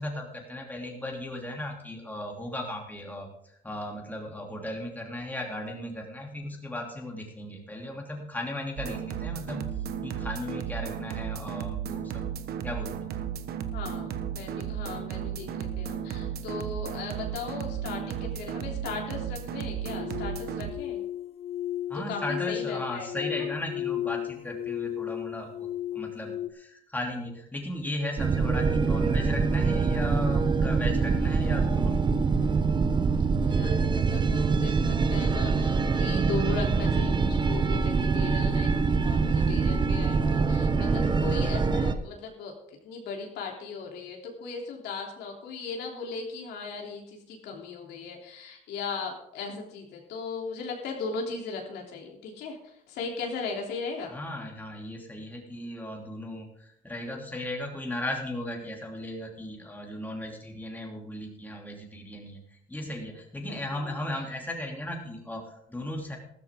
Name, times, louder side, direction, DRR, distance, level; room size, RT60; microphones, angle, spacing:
voice 1, 0.0-3.3 3.6-9.7 10.0-12.3 12.6-13.1 21.9-25.7 25.9-32.0 40.8-41.2 54.1-66.2, left 1 dB, 10° left, 0 dB, 2.9 m, -36 dB
sound 1, 8.8-20.7, right 8 dB, 65° right, 1.2 m, -34 dB
voice 2, 13.7-21.0 22.1-23.5 33.4-54.1 63.5-64.0, left 4 dB, 80° left, 0 dB, 3.3 m, -38 dB
sound 2, 19.9-26.5, left 12 dB, 40° left, 0.7 m, -34 dB
sound 3, 28.2-41.9, right 4 dB, 25° right, 1.0 m, -24 dB
14.0 x 13.5 x 3.7 m, 0.74 s
cardioid pair, 110°, 17 cm